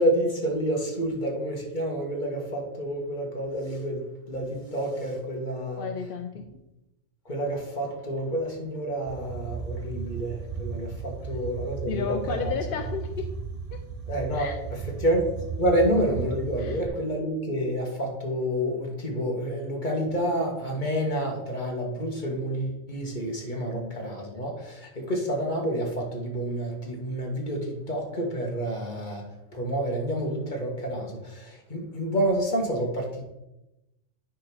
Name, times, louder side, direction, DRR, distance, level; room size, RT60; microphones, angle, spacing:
voice 1, 0.0-5.9 7.2-12.8 14.1-29.2 29.5-33.2, equal, 40° left, 0 dB, 1.7 m, -29 dB
voice 2, 5.8-6.4 11.9-13.3 13.7-13.8 14.3-14.6 16.6-16.8 23.7-23.9, left 7 dB, 60° left, 6 dB, 0.6 m, -33 dB
sound 1, 9.1-16.9, right 5 dB, 45° right, 0.5 m, -35 dB
9.3 x 3.7 x 6.0 m, 0.95 s
omnidirectional pair, 1.3 m